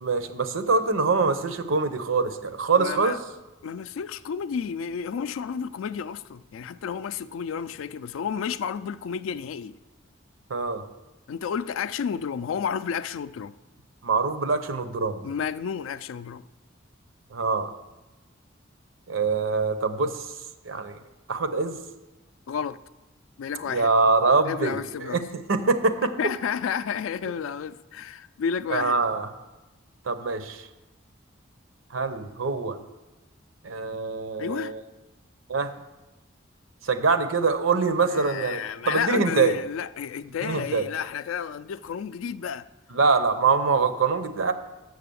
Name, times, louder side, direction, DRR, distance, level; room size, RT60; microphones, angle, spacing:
voice 1, 0.0-3.2 10.5-10.8 14.0-15.3 17.3-17.7 19.1-20.4 20.6-21.0 21.3-21.8 23.7-25.2 25.5-26.1 28.7-29.3 30.0-30.7 31.9-32.8 33.6-34.8 35.5-35.7 36.8-39.5 40.4-40.9 42.9-44.5, right 4 dB, 85° right, 0.7 m, -24 dB
voice 2, 2.8-3.2 3.6-9.7 11.3-13.5 15.2-16.5 22.5-22.8 23.4-23.9 24.5-25.2 26.2-29.0 34.4-34.7 38.1-42.7, left 7 dB, 85° left, 0.3 m, -31 dB
6.8 x 6.5 x 6.9 m
head